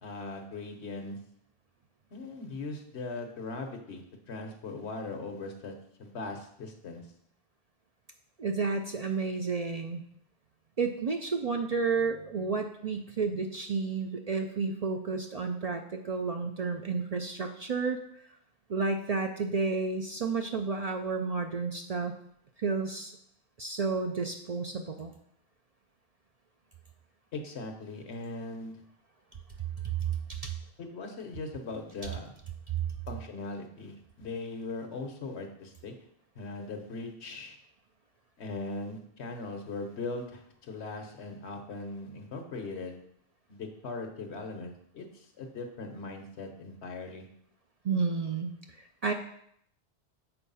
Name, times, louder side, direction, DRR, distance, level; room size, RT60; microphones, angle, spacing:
voice 1, 0.0-1.2 2.1-5.7 6.0-7.1 27.3-28.7 30.8-32.3 33.1-35.9 36.3-37.6 38.4-43.0 43.5-47.2, left 3 dB, 80° left, 5 dB, 1.3 m, -39 dB
voice 2, 8.4-10.0 10.8-18.0 18.7-22.1 22.6-23.1 23.6-25.1 30.3-30.5 47.8-48.5 49.0-49.1, right 4 dB, 50° right, 4 dB, 0.5 m, -31 dB
6.8 x 4.5 x 5.5 m, 0.70 s
omnidirectional pair, 1.1 m